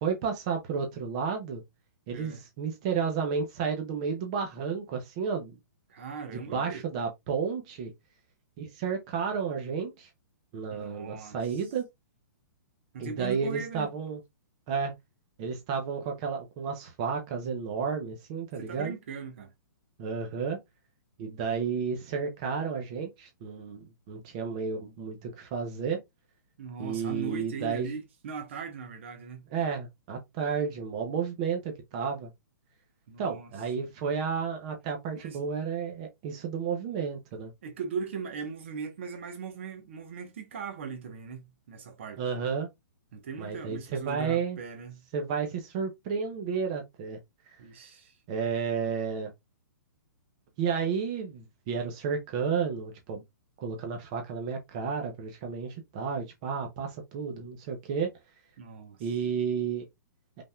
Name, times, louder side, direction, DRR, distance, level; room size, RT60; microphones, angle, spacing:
voice 1, 0.0-1.6 2.1-5.6 6.3-7.9 8.6-10.1 10.5-11.9 13.0-14.2 14.7-14.9 15.4-18.9 20.0-20.6 21.2-26.0 26.8-27.9 29.5-32.3 33.2-37.5 42.2-42.7 43.4-44.6 45.1-47.2 47.5-47.6 48.3-49.3 50.6-53.2 53.6-58.1 59.0-59.9, right 6 dB, 20° right, 0.6 m, -32 dB
voice 2, 5.9-6.8 10.7-11.6 12.9-13.9 18.6-19.5 26.6-29.5 33.1-33.5 35.2-35.4 37.6-42.2 43.1-45.0 47.6-48.2 58.6-59.1, right 6 dB, 35° right, 0.9 m, -39 dB
5.4 x 3.4 x 2.3 m
hypercardioid pair, 180°, 11 cm